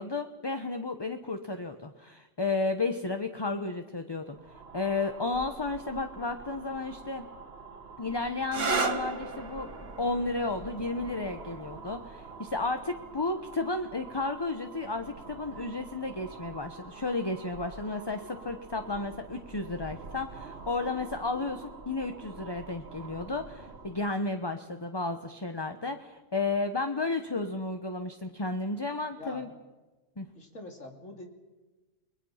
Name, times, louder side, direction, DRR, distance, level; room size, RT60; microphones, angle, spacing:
voice 1, 0.0-4.4 4.7-7.3 8.0-29.5 30.2-30.3, left 3 dB, 20° left, 7 dB, 1.0 m, -33 dB
sound 1, 4.3-24.1, right 4 dB, 55° right, 1.7 m, -47 dB
sound 2, 8.4-15.9 16.9-17.4 20.9-21.3, right 4 dB, 70° right, 1.9 m, -38 dB
voice 2, 29.2-29.5 30.3-31.3, left 2 dB, 85° left, 3 dB, 3.3 m, -43 dB
29.5 x 21.0 x 5.8 m, 1.2 s
omnidirectional pair, 1.3 m